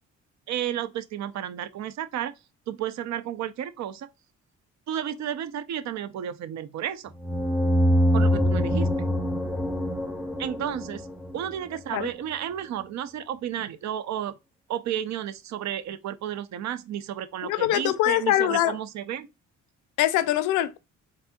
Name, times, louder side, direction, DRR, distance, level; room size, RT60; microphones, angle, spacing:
voice 1, 0.5-2.3 2.7-4.1 4.9-7.1 8.1-8.9 10.4-11.1 11.3-14.4 14.7-19.3, right 10 dB, 65° right, 0.5 m, -32 dB
sound 1, 7.2-11.8, equal, ahead, 0.6 m, -24 dB
voice 2, 17.4-18.8 20.0-20.8, left 13 dB, 90° left, 0.5 m, -23 dB
4.1 x 2.7 x 2.2 m
cardioid pair, 90°, 30 cm